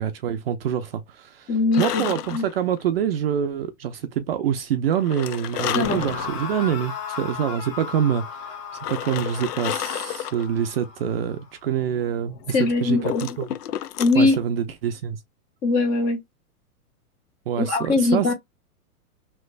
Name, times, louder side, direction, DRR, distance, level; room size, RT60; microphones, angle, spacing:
voice 1, 0.0-13.5 14.1-15.2 17.5-18.3, right 9 dB, 40° right, 0.5 m, -26 dB
voice 2, 1.5-2.0 2.3-2.4 5.7-6.0 12.5-13.3 14.0-14.4 15.6-16.2 17.6-18.3, left 3 dB, 20° left, 0.6 m, -21 dB
sound 1, 1.7-2.9 4.9-6.5 7.0-7.1 8.8-10.4 12.6-14.3, left 11 dB, 90° left, 0.7 m, -31 dB
sound 2, 5.8-12.9, left 5 dB, 35° left, 1.3 m, -36 dB
3.2 x 3.0 x 2.3 m
hypercardioid pair, 150°, 46 cm